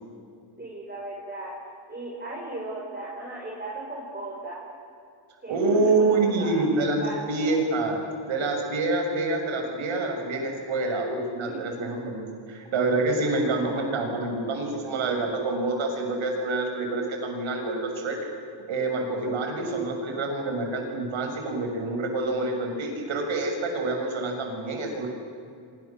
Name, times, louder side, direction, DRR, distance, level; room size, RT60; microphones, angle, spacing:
voice 1, 0.6-1.5 1.9-4.6 5.4-7.5 11.4-11.7 13.7-13.9, right 2 dB, 20° right, -5 dB, 6.5 m, -37 dB
voice 2, 5.5-18.2 18.7-25.1, right 2 dB, 75° right, 3 dB, 6.4 m, -27 dB
29.0 x 25.0 x 7.4 m, 2.4 s
cardioid pair, 95°, 47 cm